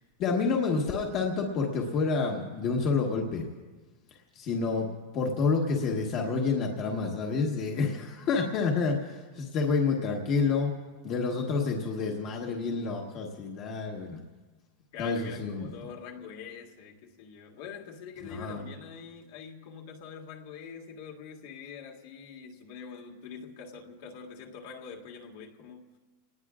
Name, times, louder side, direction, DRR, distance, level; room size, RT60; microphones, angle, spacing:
voice 1, 0.2-3.5 4.3-4.9 5.1-10.7 11.0-14.2 15.0-15.7 18.2-18.6, left 4 dB, 30° left, 0 dB, 1.3 m, -28 dB
voice 2, 14.9-26.0, left 6 dB, 50° left, 1 dB, 1.8 m, -44 dB
28.5 x 19.0 x 2.4 m, 1.3 s
supercardioid pair, 175°, 0 cm